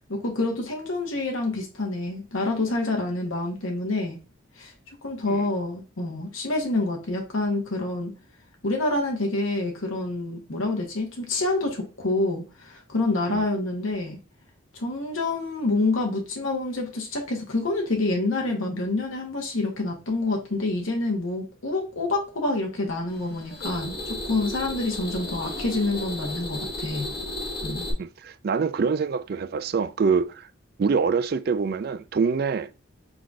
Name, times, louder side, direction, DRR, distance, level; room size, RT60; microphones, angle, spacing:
voice 1, 0.1-4.2 4.6-4.7 5.0-8.1 8.6-14.2 14.7-23.9 24.2-27.1 27.6-27.9, left 2 dB, 80° left, 1.1 m, -27 dB
sound 1, 23.1-27.9, left 1 dB, 45° left, 1.0 m, -34 dB
voice 2, 28.0-30.5 30.8-32.7, right 5 dB, 50° right, 0.3 m, -25 dB
4.7 x 3.9 x 2.6 m
head